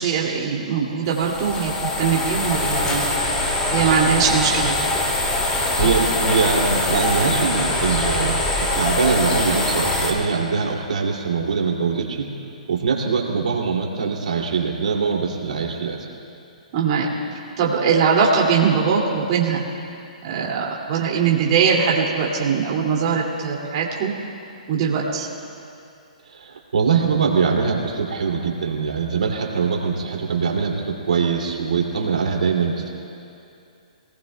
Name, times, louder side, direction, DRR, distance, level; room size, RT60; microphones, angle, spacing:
voice 1, 0.0-3.0 3.7-4.7 16.7-17.1 17.6-19.6 20.2-24.1 24.7-25.3, right 6 dB, 45° right, -3 dB, 2.4 m, -21 dB
sound 1, 1.1-10.1, left 2 dB, 20° left, 2.3 m, -23 dB
voice 2, 5.8-12.3 12.7-16.1 26.3-32.9, right 5 dB, 80° right, -1 dB, 2.5 m, -22 dB
27.5 x 19.0 x 2.2 m, 2.7 s
hypercardioid pair, 145°, 4 cm